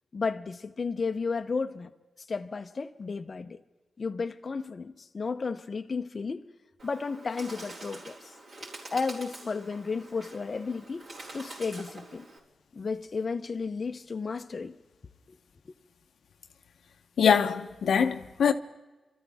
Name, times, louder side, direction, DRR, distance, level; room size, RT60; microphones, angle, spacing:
voice 1, 0.1-1.9 2.3-3.6 4.0-6.4 6.8-8.3 8.9-11.1 11.3-12.2 12.7-14.7, left 4 dB, 40° left, 0.7 m, -33 dB
Bird, 6.8-12.4, right 2 dB, 65° right, 4.4 m, -46 dB
voice 2, 17.2-18.5, left 7 dB, 85° left, 0.8 m, -23 dB
29.0 x 13.5 x 3.5 m
wide cardioid pair, 135°, 0 cm